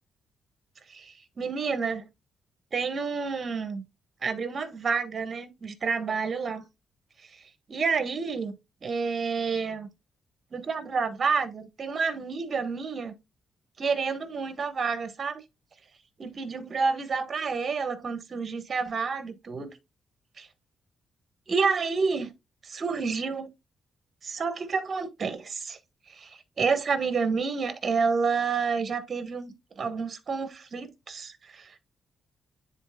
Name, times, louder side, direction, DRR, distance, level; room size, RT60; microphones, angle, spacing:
voice 1, 0.9-2.1 2.7-3.8 4.2-6.6 7.7-8.5 8.8-9.9 10.5-13.1 13.8-15.4 16.2-19.7 20.4-20.5 21.5-22.3 22.6-23.5 24.2-25.8 26.1-31.8, right 5 dB, 45° right, 1.4 m, -29 dB
9.9 x 4.3 x 2.2 m
cardioid pair, 95°, 0 cm